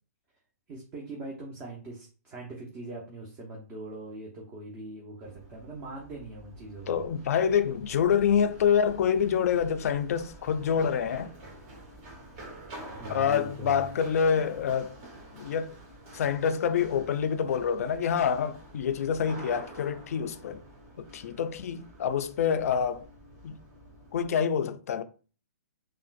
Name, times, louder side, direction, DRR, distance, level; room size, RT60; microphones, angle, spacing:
voice 1, 0.7-7.1 12.9-13.8, right 2 dB, 25° right, 0.8 m, -41 dB
Run, 5.2-24.3, right 1 dB, 40° right, 1.3 m, -48 dB
voice 2, 6.9-11.3 13.1-14.9 15.3-15.8 16.1-20.6 21.0-23.1 23.4-23.6 24.1-25.0, left 7 dB, 60° left, 0.4 m, -27 dB
3.6 x 2.3 x 2.5 m
hypercardioid pair, 135°, 9 cm